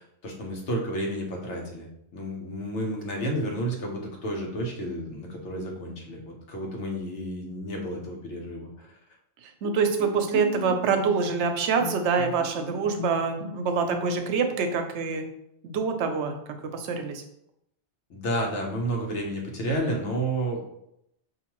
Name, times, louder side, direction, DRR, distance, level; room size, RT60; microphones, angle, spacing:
voice 1, 0.0-8.9 18.1-20.6, right 1 dB, 90° left, 0 dB, 1.2 m, -31 dB
Bowed string instrument, 9.6-14.5, left 5 dB, 30° left, 0.5 m, -38 dB
voice 2, 9.6-15.3 15.6-16.4 16.7-17.2, right 5 dB, 80° right, 6 dB, 0.9 m, -25 dB
4.9 x 2.6 x 3.0 m, 0.78 s
omnidirectional pair, 1.2 m